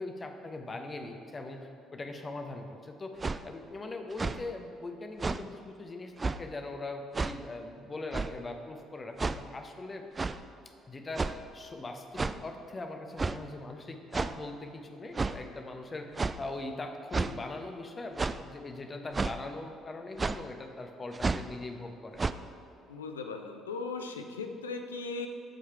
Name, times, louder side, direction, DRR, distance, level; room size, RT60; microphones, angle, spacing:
voice 1, 0.0-3.2 3.4-10.1 10.9-22.3, left 2 dB, 30° left, 5 dB, 1.0 m, -41 dB
sound 1, 3.2-3.4 4.1-4.4 5.2-5.4 6.2-6.4 7.1-7.4 8.1-8.4 9.2-9.4 10.1-10.4 11.1-11.5 12.1-12.4 13.2-13.4 14.1-14.3 15.1-15.4 16.2-16.4 17.1-17.3 18.2-18.4 19.1-19.4 20.2-20.4 21.1-21.5 22.2-22.3, right 4 dB, 25° right, 0.3 m, -31 dB
voice 2, 22.9-25.3, left 4 dB, 80° left, 6 dB, 0.5 m, -38 dB
13.0 x 5.0 x 4.5 m, 2.7 s
figure-of-eight pair, 50°, 0 cm